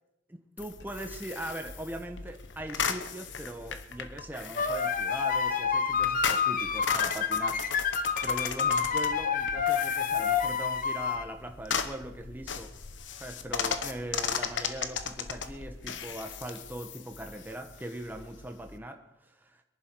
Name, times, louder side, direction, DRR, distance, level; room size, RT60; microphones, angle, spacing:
voice 1, 0.3-12.7 13.2-19.6, right 1 dB, 10° right, 4 dB, 1.2 m, -41 dB
sound 1, 0.6-18.8, left 6 dB, 90° left, 1.0 m, -37 dB
sound 2, 4.6-11.2, left 6 dB, 50° left, 0.8 m, -28 dB
23.0 x 11.0 x 4.7 m, 0.87 s
head